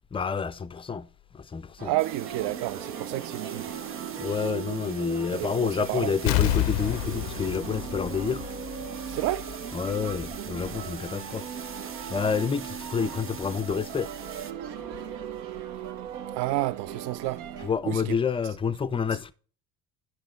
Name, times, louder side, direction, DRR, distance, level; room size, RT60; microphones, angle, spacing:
voice 1, 0.1-1.1 1.3-1.9 4.2-8.4 9.7-11.4 12.1-14.1 17.6-19.3, left 6 dB, 10° left, 0.4 m, -28 dB
voice 2, 1.8-3.7 5.3-6.1 9.1-9.5 16.3-17.4 17.9-18.2, right 16 dB, 55° right, 0.6 m, -30 dB
sound 1, 1.8-17.7, right 9 dB, 75° right, 0.9 m, -38 dB
sound 2, 2.0-14.5, right 6 dB, 25° right, 0.8 m, -45 dB
Explosion, 6.3-8.9 9.2-9.3, left 13 dB, 80° left, 0.6 m, -27 dB
10.5 x 5.6 x 3.3 m
hypercardioid pair, 55°, 49 cm